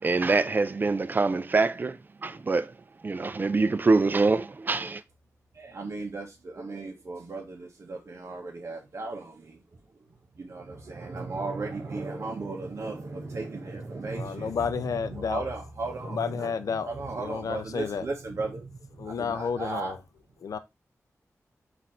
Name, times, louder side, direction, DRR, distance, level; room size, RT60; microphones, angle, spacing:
voice 1, 0.0-2.7 3.0-5.0, right 3 dB, 35° right, 0.4 m, -25 dB
voice 2, 5.5-9.8 10.4-16.5 16.8-19.9, right 3 dB, 55° right, 0.8 m, -36 dB
voice 3, 14.1-15.5 16.0-16.9 17.2-18.1 19.0-20.0 20.4-20.6, left 6 dB, 90° left, 0.4 m, -31 dB
4.0 x 2.5 x 4.2 m
wide cardioid pair, 100°, 6 cm